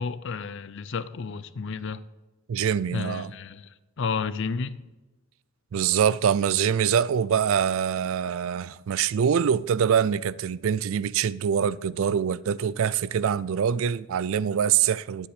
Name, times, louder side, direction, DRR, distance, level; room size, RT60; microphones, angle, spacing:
voice 1, 0.0-2.0 2.9-3.7 4.0-4.8, left 5 dB, 55° left, 0.5 m, -31 dB
voice 2, 2.5-3.3 5.7-15.3, right 8 dB, 65° right, 0.3 m, -24 dB
9.9 x 8.2 x 5.0 m
head